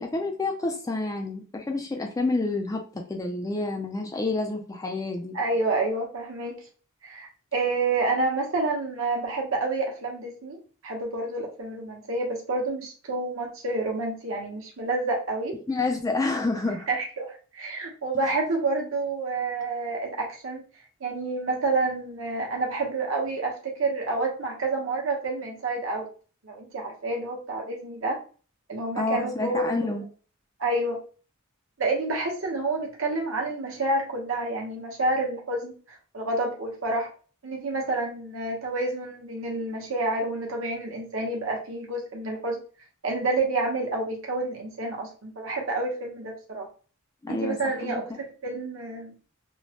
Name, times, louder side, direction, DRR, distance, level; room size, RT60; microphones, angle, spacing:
voice 1, 0.0-5.3 15.7-16.9 29.0-30.0 47.2-48.2, left 3 dB, 15° left, 3 dB, 0.3 m, -29 dB
voice 2, 5.3-6.6 7.0-15.6 16.9-20.6 21.0-26.1 26.4-28.2 28.7-29.9 30.6-31.0 31.8-35.7 36.1-37.1 37.4-42.6 43.0-46.7 47.3-49.1, right 2 dB, 60° right, 0 dB, 0.8 m, -29 dB
3.0 x 2.0 x 2.8 m, 0.38 s
head